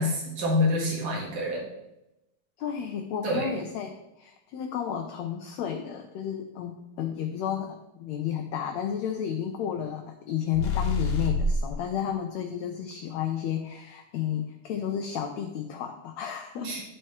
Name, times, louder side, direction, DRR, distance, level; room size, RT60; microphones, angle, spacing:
voice 1, 0.0-1.6 3.2-3.5 16.6-16.8, left 1 dB, 40° right, -2 dB, 1.9 m, -27 dB
voice 2, 2.6-16.8, left 9 dB, 80° left, 4 dB, 1.6 m, -32 dB
sound 1, 10.5-11.8, left 2 dB, 60° left, 2.0 m, -26 dB
11.5 x 4.4 x 3.2 m, 0.91 s
omnidirectional pair, 3.6 m